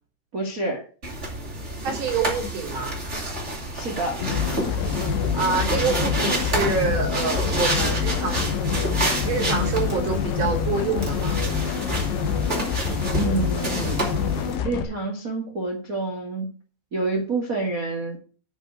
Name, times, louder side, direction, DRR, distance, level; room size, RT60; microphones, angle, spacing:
voice 1, 0.3-0.8 3.7-4.2 13.1-14.0 14.6-16.5 16.9-18.2, right 3 dB, 60° right, 1 dB, 0.8 m, -28 dB
sound 1, 1.0-14.6, right 1 dB, 20° right, 2.5 m, -29 dB
voice 2, 1.8-3.0 5.0-8.6 9.2-11.4, right 5 dB, 40° right, 0 dB, 3.5 m, -27 dB
sound 2, 4.2-14.8, left 7 dB, 75° left, 2.1 m, -26 dB
9.6 x 5.4 x 7.8 m, 0.39 s
omnidirectional pair, 5.4 m